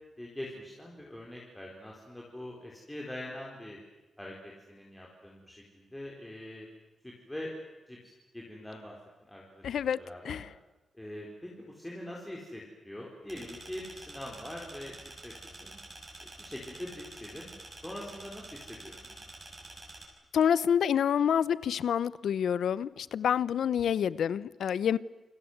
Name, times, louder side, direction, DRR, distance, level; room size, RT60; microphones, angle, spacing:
voice 1, 0.2-3.8 4.2-6.7 7.0-7.5 7.9-9.0 9.3-9.7 10.0-10.4 10.9-15.8 16.2-17.5 17.8-18.9, left 1 dB, 5° left, 4.3 m, -43 dB
voice 2, 9.6-10.0 10.2-10.5 20.3-25.0, left 8 dB, 80° left, 0.8 m, -27 dB
sound 1, 13.3-20.0, right 2 dB, 25° right, 6.4 m, -48 dB
28.5 x 25.0 x 8.0 m
wide cardioid pair, 170°, 0 cm